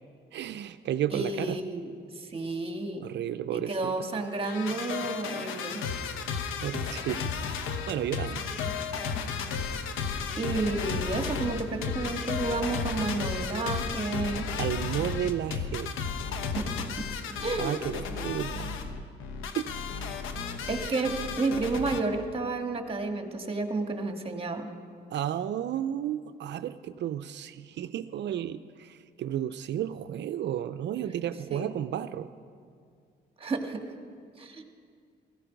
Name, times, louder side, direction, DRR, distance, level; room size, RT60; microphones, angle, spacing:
voice 1, 0.3-1.6 3.0-4.1 6.6-7.3 7.9-8.5 14.6-15.9 17.6-18.8 19.5-19.8 20.6-20.9 25.1-32.3, right 11 dB, 65° right, 12 dB, 0.5 m, -33 dB
voice 2, 1.1-1.9 2.1-3.0 3.5-5.8 8.6-8.7 10.4-14.5 16.5-17.1 17.4-17.8 18.1-18.3 20.7-24.7 31.5-31.7 33.4-33.8 34.4-34.6, right 3 dB, 30° right, 5 dB, 1.7 m, -31 dB
sound 1, 4.3-22.0, left 5 dB, 90° left, 1.0 m, -33 dB
18.0 x 15.0 x 5.2 m, 2.2 s
cardioid pair, 90°, 20 cm